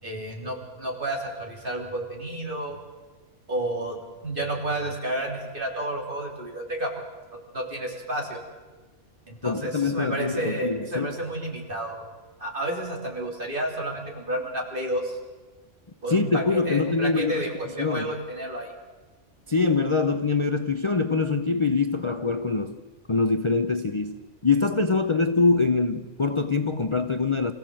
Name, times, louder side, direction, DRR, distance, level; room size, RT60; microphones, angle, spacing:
voice 1, 0.0-2.8 3.5-6.9 7.3-8.4 9.3-12.0 12.4-15.2 16.0-18.7, right 1 dB, 45° right, 3.8 m, -31 dB
voice 2, 9.4-11.1 16.1-17.5 17.8-18.1 19.5-22.8 23.1-27.5, left 4 dB, 30° left, 0.7 m, -24 dB
26.5 x 16.0 x 7.8 m
omnidirectional pair, 1.3 m